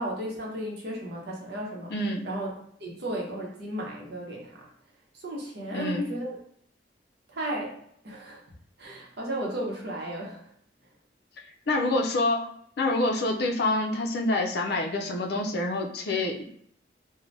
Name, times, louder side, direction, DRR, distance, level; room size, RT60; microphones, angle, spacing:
voice 1, 0.0-1.9 2.2-2.5 2.8-4.7 5.1-6.3 7.3-7.7 8.0-8.4 8.8-10.4, right 1 dB, 65° right, -2 dB, 0.8 m, -34 dB
voice 2, 1.9-2.3 5.7-6.0 11.7-12.5 12.8-16.4, left 2 dB, 60° left, 1 dB, 0.5 m, -27 dB
3.2 x 2.1 x 2.6 m, 0.66 s
head